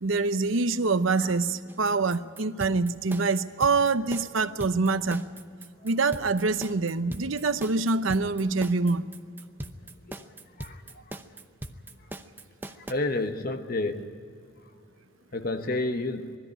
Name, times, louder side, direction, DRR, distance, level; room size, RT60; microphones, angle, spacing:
voice 1, 0.0-5.2 5.8-9.1, right 3 dB, 90° right, 12 dB, 0.8 m, -25 dB
sound 1, 1.7-12.9, right 1 dB, 10° right, 0.8 m, -40 dB
voice 2, 12.9-14.1 15.3-16.4, left 2 dB, 50° left, 7 dB, 1.1 m, -30 dB
20.5 x 13.5 x 10.0 m, 2.3 s
head